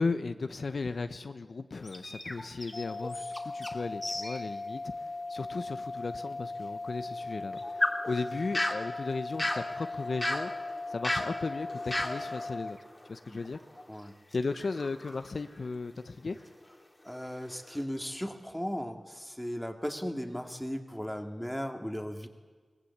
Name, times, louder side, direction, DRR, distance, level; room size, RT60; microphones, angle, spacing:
voice 1, 0.0-12.8 13.1-13.6 14.3-16.4, left 3 dB, 65° left, 9 dB, 1.0 m, -36 dB
sound 1, 1.8-3.8 4.0-4.4 4.8-4.9 5.6-5.7 7.2-13.9 14.3-15.8 16.4-16.6 17.1-17.8, left 1 dB, 20° left, 2.6 m, -36 dB
sound 2, 2.7-12.7, left 3 dB, 85° left, 1.3 m, -39 dB
voice 2, 17.0-22.3, equal, 5° left, 5 dB, 2.4 m, -36 dB
23.5 x 20.5 x 8.7 m, 1.5 s
wide cardioid pair, 80°, 0 cm